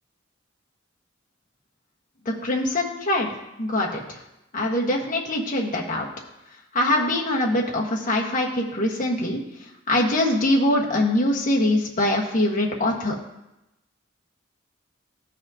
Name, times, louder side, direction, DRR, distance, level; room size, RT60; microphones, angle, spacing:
voice 1, 2.2-3.3 3.6-4.0 4.5-6.1 6.7-9.4 9.9-13.1, left 1 dB, 45° left, -2 dB, 1.4 m, -23 dB
14.5 x 4.9 x 2.8 m, 0.92 s
head